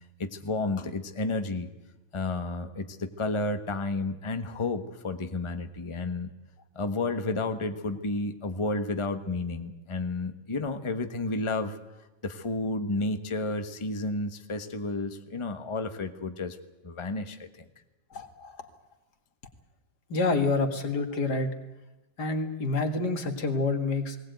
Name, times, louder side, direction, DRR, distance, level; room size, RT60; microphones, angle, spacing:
voice 1, 0.2-1.7 2.1-6.3 6.7-11.8 12.2-16.6 16.8-17.5, left 2 dB, 20° left, 8 dB, 1.2 m, -31 dB
voice 2, 18.1-18.6 20.1-21.5 22.2-24.2, left 3 dB, 80° left, 6 dB, 2.5 m, -28 dB
20.0 x 18.0 x 9.2 m, 1.0 s
omnidirectional pair, 1.7 m